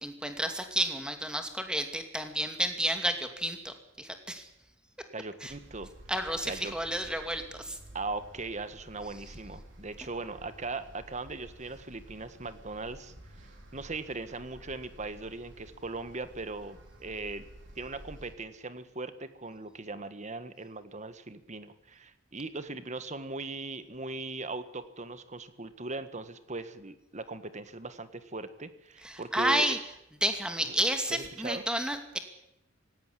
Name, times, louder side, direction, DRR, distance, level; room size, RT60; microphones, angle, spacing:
voice 1, 0.0-4.5 5.4-5.5 6.1-7.8 29.0-29.8 30.2-32.2, right 1 dB, 5° right, 6 dB, 2.5 m, -31 dB
voice 2, 5.1-5.9 6.4-6.7 7.9-13.1 13.7-17.4 17.8-29.7 31.1-31.6, right 3 dB, 35° right, 11 dB, 1.6 m, -39 dB
sound 1, 5.5-18.3, right 1 dB, 65° right, 5.4 m, -52 dB
17.0 x 17.0 x 10.0 m, 0.83 s
head